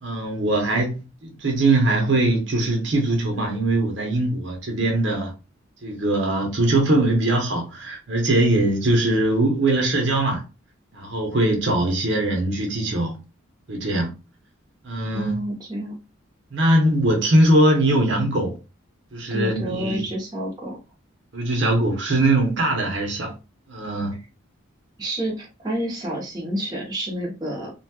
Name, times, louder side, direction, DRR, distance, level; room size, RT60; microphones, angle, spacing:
voice 1, 0.0-5.3 5.8-10.4 10.9-13.2 13.7-14.1 14.8-15.4 16.5-18.6 19.1-20.1 21.3-23.3 23.7-24.2, right 1 dB, 65° right, 0.8 m, -21 dB
voice 2, 15.1-16.0 19.3-20.8 25.0-27.7, right 1 dB, 20° right, 0.9 m, -29 dB
2.8 x 2.3 x 2.8 m
head